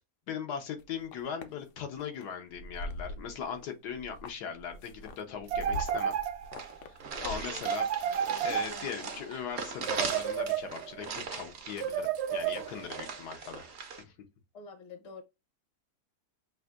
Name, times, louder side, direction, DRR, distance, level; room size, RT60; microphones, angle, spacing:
voice 1, 0.3-6.1 6.8-7.9 8.4-14.1, left 7 dB, 80° left, 1.4 m, -39 dB
sound 1, 0.8-1.5 2.0-2.2 2.5-3.7 3.9-7.6, left 1 dB, 60° left, 0.8 m, -42 dB
sound 2, 5.5-6.8 7.6-9.1 9.8-11.0 11.8-13.0, right 8 dB, 85° right, 0.5 m, -32 dB
sound 3, 6.1-6.2 6.5-14.0, right 5 dB, 55° right, 0.8 m, -40 dB
voice 2, 7.1-7.6 8.0-9.3 14.5-15.2, left 3 dB, 35° left, 0.7 m, -48 dB
6.2 x 2.6 x 2.4 m
omnidirectional pair, 1.7 m